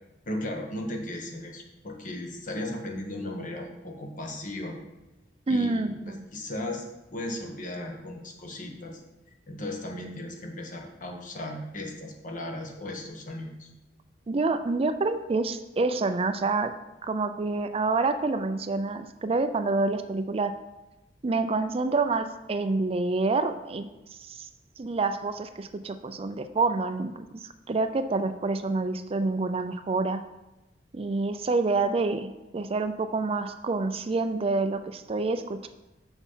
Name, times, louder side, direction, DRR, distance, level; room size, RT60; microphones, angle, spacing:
voice 1, 0.2-4.8 5.5-5.9 6.3-6.8 7.1-9.0 9.5-13.7, left 1 dB, 50° left, 2 dB, 1.4 m, -36 dB
voice 2, 5.5-6.2 14.3-16.7 17.0-20.5 21.2-23.9 24.2-24.5 24.8-30.2 30.9-35.7, right 3 dB, 35° right, 9 dB, 0.4 m, -27 dB
6.9 x 6.2 x 5.6 m, 0.99 s
head